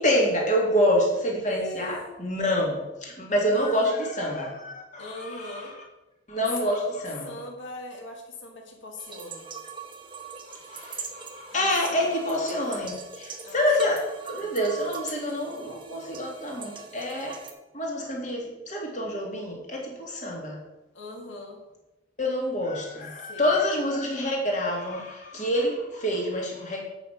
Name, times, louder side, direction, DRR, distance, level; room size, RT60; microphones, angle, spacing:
voice 1, 0.0-5.7 6.3-7.4 10.4-17.4 17.7-20.6 22.2-26.8, left 1 dB, 40° left, -1 dB, 2.0 m, -27 dB
voice 2, 1.4-2.2 3.5-3.8 5.0-5.7 6.6-6.9 7.2-9.5 11.5-12.0 13.4-13.6 20.9-21.6 23.2-23.6, left 1 dB, 65° left, 2 dB, 1.5 m, -41 dB
sound 1, 9.0-17.5, right 5 dB, 25° right, 0.8 m, -42 dB
8.2 x 5.2 x 5.6 m, 1.0 s
head